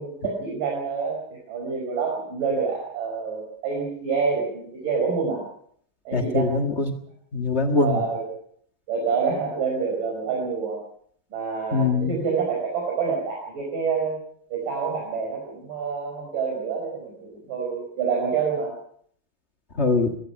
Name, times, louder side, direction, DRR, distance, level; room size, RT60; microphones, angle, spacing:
voice 1, 0.0-5.4 6.1-6.6 7.8-8.3 8.9-10.8 11.3-14.2 14.5-18.7, right 5 dB, 65° right, 0 dB, 6.4 m, -27 dB
voice 2, 6.1-6.9 7.3-8.0 11.7-12.1 19.8-20.1, left 3 dB, 75° left, 5 dB, 0.6 m, -22 dB
24.0 x 19.0 x 5.8 m, 0.62 s
omnidirectional pair, 4.0 m